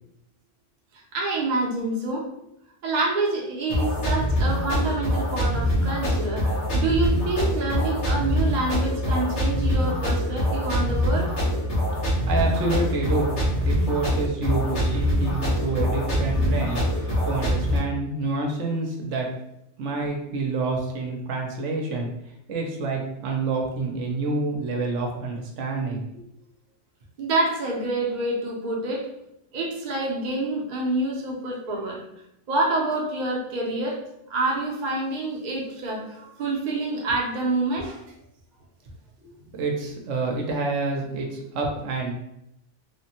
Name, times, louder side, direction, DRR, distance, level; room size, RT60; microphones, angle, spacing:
voice 1, 1.1-2.3 2.8-11.3 20.0-20.1 27.2-29.1 29.5-32.0 32.5-34.0 34.3-38.0, right 2 dB, 45° right, -2 dB, 0.7 m, -27 dB
sound 1, 3.7-17.8, equal, 65° left, 1.5 m, -24 dB
voice 2, 12.3-13.3 13.6-19.3 19.8-22.1 22.5-26.0 39.2-42.1, right 3 dB, 80° right, 1 dB, 1.0 m, -28 dB
3.4 x 2.1 x 2.8 m, 0.80 s
omnidirectional pair, 1.2 m